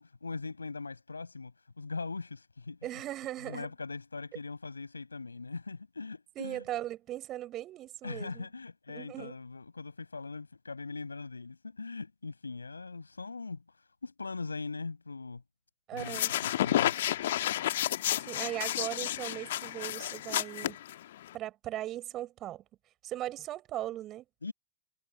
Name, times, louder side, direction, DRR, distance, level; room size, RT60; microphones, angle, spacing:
voice 1, 0.0-2.8 3.4-6.6 8.0-13.6 14.0-15.4 15.9-16.9 24.4-24.5, left 4 dB, 80° left, 6.0 m, -41 dB
voice 2, 2.8-3.7 6.3-8.5 8.9-9.3 15.9-16.3 18.3-20.8 21.3-22.6 23.0-24.2, right 13 dB, 35° right, 6.4 m, -38 dB
sound 1, 16.0-21.3, left 13 dB, 60° left, 1.7 m, -31 dB
figure-of-eight pair, 90°, 0 cm